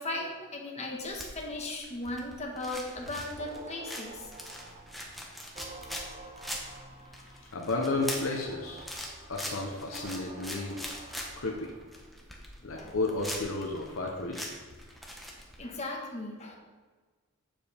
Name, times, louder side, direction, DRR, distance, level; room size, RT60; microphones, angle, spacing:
voice 1, 0.0-4.3 12.7-12.9 15.6-16.6, left 2 dB, 30° left, -1 dB, 1.4 m, -37 dB
sound 1, 0.9-15.6, equal, ahead, 1.0 m, -42 dB
sound 2, 3.4-12.1, right 2 dB, 25° right, 0.7 m, -49 dB
voice 2, 7.3-8.9 9.3-10.8 11.4-11.7 12.6-14.5, left 2 dB, 65° left, 0 dB, 0.9 m, -32 dB
8.8 x 7.4 x 3.5 m, 1.4 s
head